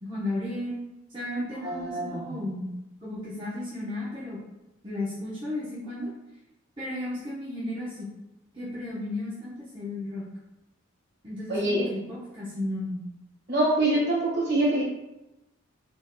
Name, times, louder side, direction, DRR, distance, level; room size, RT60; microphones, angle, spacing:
voice 1, 0.0-0.8 1.1-2.7 3.0-4.4 4.8-6.1 6.8-8.1 8.5-10.2 11.2-13.0, left 1 dB, 25° right, -9 dB, 0.9 m, -34 dB
voice 2, 1.6-2.3 11.5-11.9 13.5-14.8, right 1 dB, 50° right, -4 dB, 1.6 m, -25 dB
4.7 x 4.4 x 2.3 m, 0.94 s
head